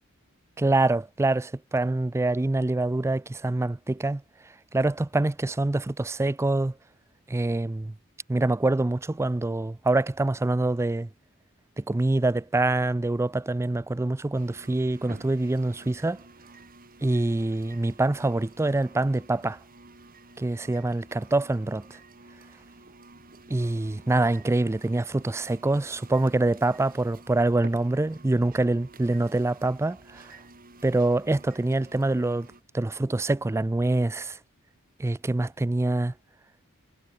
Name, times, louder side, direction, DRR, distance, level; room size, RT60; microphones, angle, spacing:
voice 1, 0.6-4.2 4.7-6.7 7.3-7.9 8.3-11.1 11.8-16.2 17.0-19.6 20.4-21.9 23.5-30.2 30.8-34.4 35.0-36.1, right 2 dB, 10° right, 0.3 m, -25 dB
sound 1, 14.4-32.6, right 2 dB, 40° right, 5.7 m, -51 dB
head